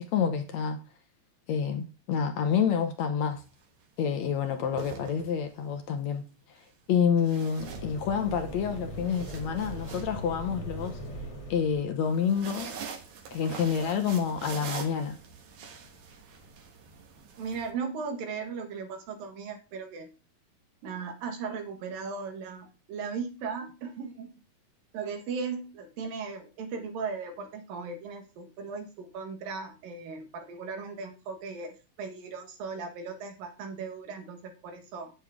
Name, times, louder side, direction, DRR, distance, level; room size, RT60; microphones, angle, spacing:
voice 1, 0.1-0.8 1.5-3.4 4.0-6.2 6.9-11.0 11.5-12.7 13.3-15.2, left 7 dB, 65° left, 1.9 m, -28 dB
sound 1, 3.4-3.6 4.5-5.7 7.2-8.4 8.8-10.9 12.0-17.7, right 6 dB, 65° right, 2.8 m, -43 dB
sound 2, 7.6-12.1, right 1 dB, 30° left, 0.6 m, -40 dB
voice 2, 17.4-20.1 20.8-24.3 24.9-35.1, right 5 dB, 90° right, 3.5 m, -37 dB
9.0 x 8.9 x 3.6 m
omnidirectional pair, 3.9 m